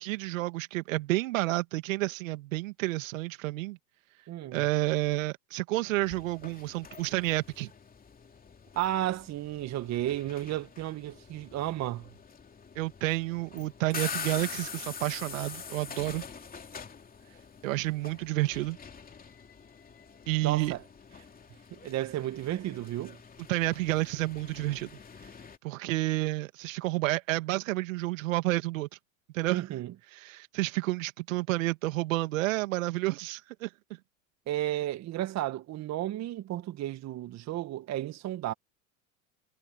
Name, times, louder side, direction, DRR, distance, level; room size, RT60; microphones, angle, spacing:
voice 1, 0.0-3.8 4.5-7.7 12.8-16.2 17.6-18.8 20.3-20.7 23.5-24.9 25.6-28.9 29.3-29.6 30.1-33.7, right 19 dB, 70° right, 2.3 m, -30 dB
voice 2, 4.3-4.6 8.7-12.1 20.4-20.8 21.7-23.2 29.5-29.9 34.5-38.5, right 14 dB, 40° right, 1.6 m, -33 dB
sound 1, 6.0-25.6, left 6 dB, 20° left, 2.9 m, -45 dB
hypercardioid pair, 90°, 41 cm